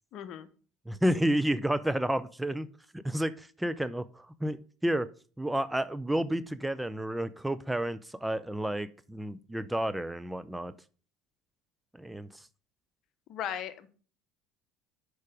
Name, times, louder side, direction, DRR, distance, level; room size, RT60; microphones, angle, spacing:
voice 1, 0.1-0.5 13.3-13.9, left 9 dB, 55° left, 12 dB, 0.9 m, -37 dB
voice 2, 0.9-2.7 3.0-5.1 5.4-10.7 12.0-12.4, right 1 dB, 5° right, 14 dB, 0.5 m, -31 dB
6.5 x 4.9 x 5.0 m, 0.39 s
hypercardioid pair, 75°, 0 cm